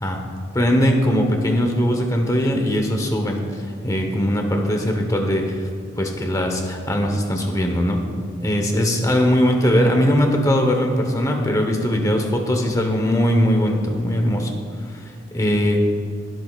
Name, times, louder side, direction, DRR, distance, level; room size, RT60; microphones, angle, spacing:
voice 1, 0.5-5.6 6.0-8.0 8.4-14.5 14.9-15.0 15.3-15.8, equal, 20° left, 3 dB, 1.1 m, -20 dB
21.0 x 7.8 x 2.4 m, 2.1 s
head